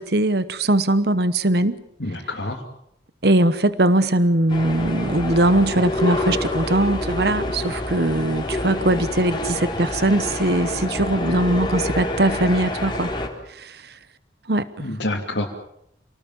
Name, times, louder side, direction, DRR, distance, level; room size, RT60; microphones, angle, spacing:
voice 1, 0.0-1.8 3.2-13.1 13.5-14.0 14.5-14.9, right 1 dB, 60° right, 14 dB, 1.1 m, -21 dB
voice 2, 2.0-2.6 14.8-15.5, left 2 dB, 75° left, -2 dB, 2.8 m, -27 dB
sound 1, 4.5-13.3, left 1 dB, 25° left, 3.8 m, -27 dB
28.5 x 18.5 x 7.5 m, 0.77 s
head